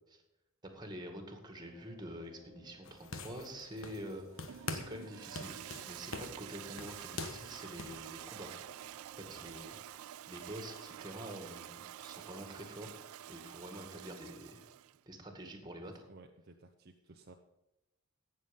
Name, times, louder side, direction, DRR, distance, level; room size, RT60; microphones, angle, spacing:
voice 1, 0.6-4.2 4.7-5.6 5.8-8.6 9.3-9.8 10.2-13.0 13.3-14.7 15.1-16.1, equal, 20° right, 4 dB, 2.1 m, -47 dB
sound 1, 1.6-12.2, right 1 dB, 30° left, 3.7 m, -61 dB
sound 2, 2.8-4.1 4.4-5.0 5.3-8.0, left 3 dB, 65° left, 1.3 m, -44 dB
Toilet flush, 3.9-15.0, right 12 dB, 75° right, 0.3 m, -49 dB
voice 2, 15.8-17.3, right 3 dB, 45° right, 4 dB, 0.7 m, -56 dB
17.0 x 7.0 x 5.4 m, 0.93 s
head